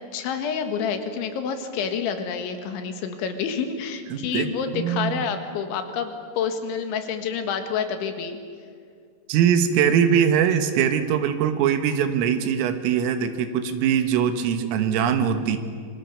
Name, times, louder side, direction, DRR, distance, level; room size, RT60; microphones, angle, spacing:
voice 1, 0.1-8.4, left 6 dB, 70° left, 7 dB, 3.9 m, -28 dB
voice 2, 4.1-4.5 4.7-5.3 9.3-15.6, right 8 dB, 80° right, 8 dB, 4.0 m, -22 dB
27.5 x 25.0 x 6.9 m, 2.2 s
omnidirectional pair, 6.0 m